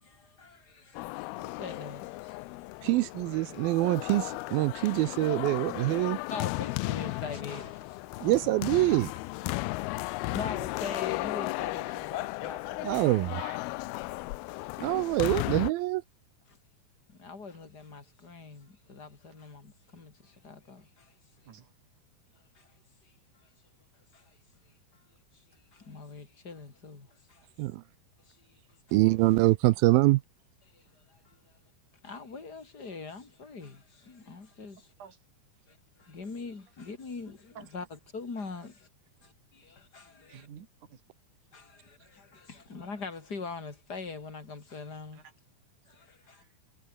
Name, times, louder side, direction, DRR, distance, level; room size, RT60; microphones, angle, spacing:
voice 1, 0.0-2.5 2.8-2.9 6.3-8.4 9.7-13.3 16.5-16.6 17.2-21.1 22.6-22.7 24.1-24.2 25.7-27.4 28.3-28.5 28.9-29.0 30.7-30.8 31.1-31.4 32.0-34.8 35.7-37.8 38.1-38.9 39.2-40.5 41.5-45.2 45.9-46.4, left 4 dB, 25° left, 3.9 m, -43 dB
sound 1, 0.9-15.7, left 22 dB, 85° left, 2.5 m, -35 dB
voice 2, 2.8-6.2 8.2-9.1 12.8-13.4 14.8-16.0 27.6-27.8 28.9-30.2, right 19 dB, 80° right, 2.4 m, -25 dB
voice 3, 13.3-13.6 15.3-15.7 21.4-22.0 29.7-29.8 34.8-35.2 37.6-37.7 38.6-38.7 40.3-41.0 45.1-45.3 46.2-46.6, right 7 dB, 55° right, 3.6 m, -52 dB
omnidirectional pair, 4.4 m